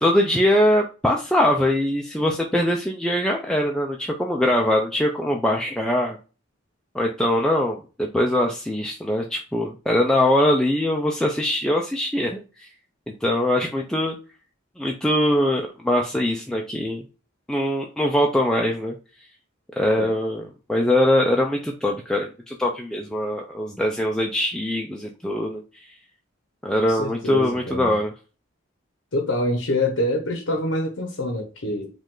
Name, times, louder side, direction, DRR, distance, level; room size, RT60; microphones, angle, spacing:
voice 1, 0.0-6.2 6.9-12.7 13.1-14.2 14.8-17.0 17.5-18.9 19.8-25.6 26.6-28.1, left 1 dB, 5° left, 0.4 m, -22 dB
voice 2, 26.8-27.9 29.1-31.9, left 1 dB, 80° left, 0.9 m, -25 dB
5.1 x 2.5 x 3.7 m
head